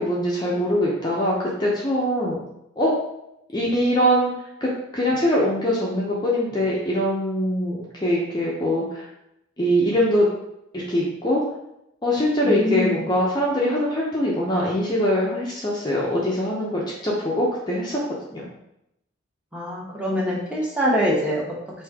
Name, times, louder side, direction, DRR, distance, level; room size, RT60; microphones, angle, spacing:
voice 1, 0.0-2.4 2.8-2.9 3.5-4.3 4.6-9.1 9.6-10.3 10.7-11.4 12.0-18.5, equal, 20° left, -4 dB, 0.6 m, -23 dB
voice 2, 12.4-13.0 19.5-21.4, equal, 5° right, -4 dB, 0.9 m, -24 dB
5.0 x 2.7 x 3.5 m, 0.82 s
head